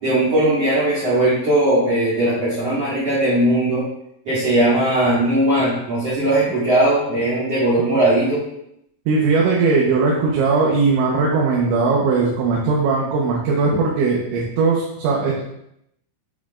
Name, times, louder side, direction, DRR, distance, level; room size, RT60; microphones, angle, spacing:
voice 1, 0.0-3.9 4.2-8.4, right 1 dB, 40° right, -10 dB, 3.1 m, -18 dB
voice 2, 9.1-15.4, right 4 dB, 85° right, -3 dB, 3.5 m, -19 dB
8.5 x 7.9 x 2.5 m, 0.78 s
omnidirectional pair, 5.3 m